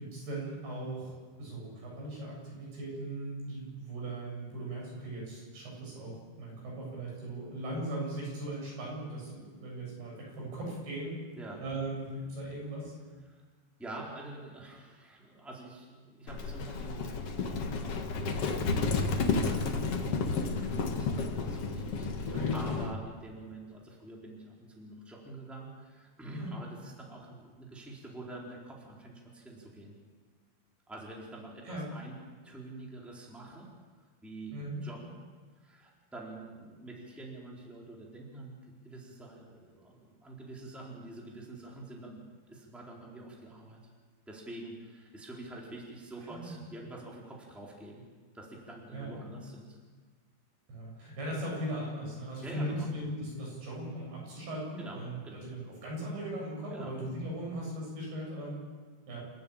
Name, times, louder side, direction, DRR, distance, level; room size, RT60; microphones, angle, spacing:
voice 1, 0.0-11.2 11.6-12.9 22.3-22.6 26.3-26.5 31.7-31.8 34.5-34.8 46.3-46.6 48.9-49.2 50.7-58.6 59.1-59.2, right 1 dB, 85° right, -3 dB, 10.0 m, -38 dB
voice 2, 13.8-29.9 30.9-32.2 32.4-33.7 34.2-35.1 35.6-42.2 42.5-43.8 44.3-48.0 48.3-49.8 52.4-52.9 54.8-55.5 56.7-57.0, right 2 dB, ahead, -3 dB, 3.8 m, -47 dB
Livestock farm animals working animals, 16.3-22.9, left 4 dB, 50° left, 2.0 m, -31 dB
28.5 x 14.0 x 8.9 m, 1.4 s
omnidirectional pair, 4.4 m